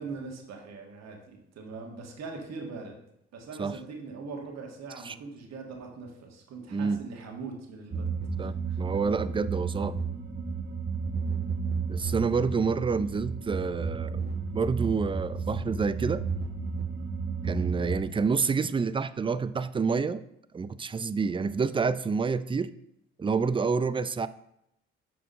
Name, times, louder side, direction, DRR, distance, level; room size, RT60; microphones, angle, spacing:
voice 1, 0.0-2.9 3.3-8.1 8.4-8.8, right 4 dB, 60° right, 2 dB, 1.7 m, -41 dB
voice 2, 6.7-7.0 8.4-10.0 11.9-14.2 14.5-16.2 17.4-20.2 20.5-22.7 23.2-24.3, right 5 dB, 20° right, 15 dB, 0.4 m, -28 dB
sound 1, 7.9-18.0, right 5 dB, 35° right, 1.2 m, -32 dB
6.1 x 4.7 x 5.5 m, 0.78 s
supercardioid pair, 60°, 29 cm